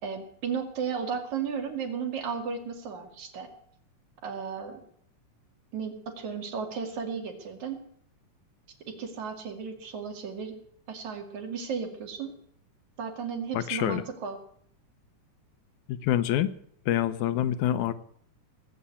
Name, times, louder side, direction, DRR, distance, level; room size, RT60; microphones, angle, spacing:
voice 1, 0.0-3.5 4.2-4.8 5.7-7.9 8.9-10.6 10.9-12.4 13.0-14.4, right 6 dB, 70° right, 4 dB, 3.4 m, -34 dB
voice 2, 13.5-14.0 15.9-16.5 16.9-17.9, left 11 dB, 80° left, 12 dB, 2.2 m, -26 dB
19.0 x 8.0 x 8.5 m, 0.64 s
omnidirectional pair, 3.5 m